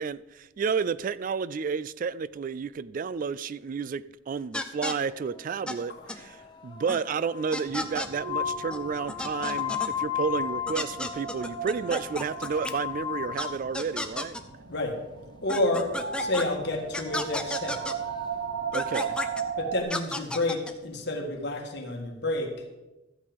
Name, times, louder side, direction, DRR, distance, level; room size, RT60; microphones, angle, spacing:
voice 1, 0.0-14.4 18.7-19.2, right 5 dB, 45° right, 0.3 m, -31 dB
sound 1, 4.5-4.9 5.7-5.8 6.1-6.2 6.9-7.0 7.5-8.1 8.7-8.8 9.1-9.9 10.7-12.7 13.4-13.5 13.7-14.4 15.5-16.4 16.9-17.9 18.7-19.4 19.9-20.7, left 1 dB, 5° left, 0.6 m, -32 dB
sound 2, 5.1-14.1 17.2-19.2, left 9 dB, 20° left, 1.0 m, -36 dB
voice 2, 5.9-6.5 14.7-15.0 15.4-15.9 16.2-17.8 19.6-22.6, left 2 dB, 55° left, 1.7 m, -30 dB
sound 3, 7.7-19.8, right 7 dB, 70° right, 1.0 m, -38 dB
13.5 x 8.5 x 5.2 m
head